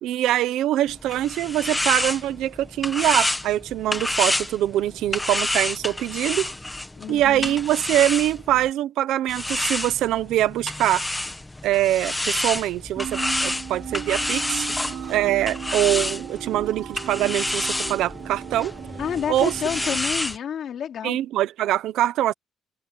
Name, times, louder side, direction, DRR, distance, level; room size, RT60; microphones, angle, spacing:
voice 1, 0.0-6.5 7.1-11.1 11.6-18.7 19.3-19.5 21.0-22.3, right 13 dB, 85° right, 1.0 m, -23 dB
sound 1, 0.9-8.7 9.3-20.4, left 2 dB, 10° left, 1.5 m, -29 dB
voice 2, 7.0-7.6 19.0-21.2, left 8 dB, 50° left, 3.9 m, -29 dB
sound 2, 13.0-20.0, right 9 dB, 55° right, 0.8 m, -36 dB
cardioid pair, 170°, 0 cm